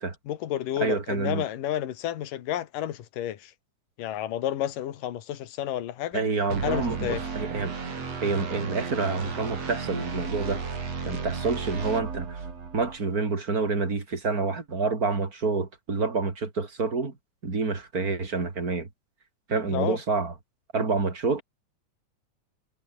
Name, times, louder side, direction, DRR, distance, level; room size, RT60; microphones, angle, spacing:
voice 1, 0.3-3.5 4.0-6.2 6.6-7.2 19.7-20.0, left 11 dB, 85° left, 3.2 m, -31 dB
voice 2, 0.8-1.4 6.1-7.7 8.2-10.6 11.0-12.4 12.7-17.1 17.4-18.9 19.5-20.3 20.7-21.4, right 4 dB, 25° right, 3.4 m, -28 dB
sound 1, 6.5-13.0, right 5 dB, 50° right, 5.2 m, -34 dB
omnidirectional pair, 3.7 m